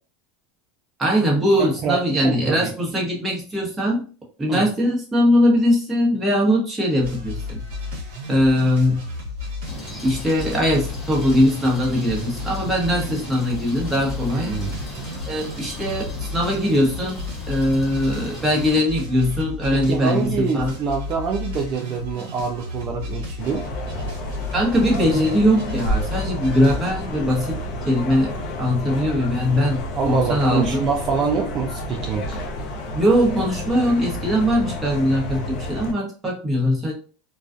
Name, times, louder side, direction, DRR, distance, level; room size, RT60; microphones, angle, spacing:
voice 1, 1.0-4.0 4.4-7.6 8.3-9.1 10.0-14.6 15.3-20.7 24.5-27.6 27.9-30.8 32.9-36.9, equal, 15° right, -2 dB, 1.0 m, -21 dB
voice 2, 1.6-2.0 2.2-2.7 4.5-4.7 14.3-14.8 19.7-23.6 30.0-32.4, right 6 dB, 40° right, 1 dB, 0.4 m, -25 dB
sound 1, 7.0-26.9, left 3 dB, 75° right, 0.9 m, -33 dB
sound 2, 9.7-18.8, equal, 20° left, 0.8 m, -36 dB
sound 3, 23.4-35.9, left 1 dB, 50° left, 0.6 m, -30 dB
2.3 x 2.3 x 2.5 m, 0.38 s
supercardioid pair, 125°, 0 cm